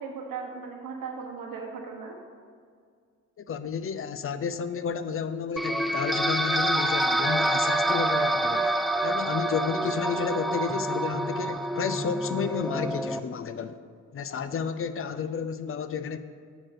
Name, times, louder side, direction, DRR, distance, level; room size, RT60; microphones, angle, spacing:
voice 1, 0.0-2.2, right 5 dB, 75° right, 0 dB, 1.5 m, -37 dB
voice 2, 3.4-8.7 9.0-13.8 14.1-16.2, left 6 dB, 40° left, 12 dB, 0.6 m, -31 dB
sound 1, 5.6-13.2, right 1 dB, ahead, 0.3 m, -27 dB
8.6 x 5.0 x 5.9 m, 2.1 s
supercardioid pair, 60°, 33 cm